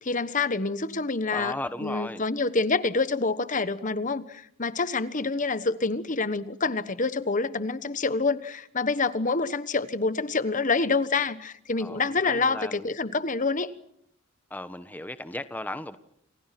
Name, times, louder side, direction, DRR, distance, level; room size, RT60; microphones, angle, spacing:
voice 1, 0.0-13.7, left 3 dB, 40° left, 1.2 m, -27 dB
voice 2, 1.3-2.2 11.8-12.9 14.5-16.0, left 1 dB, 10° left, 1.1 m, -36 dB
30.0 x 28.5 x 6.0 m
head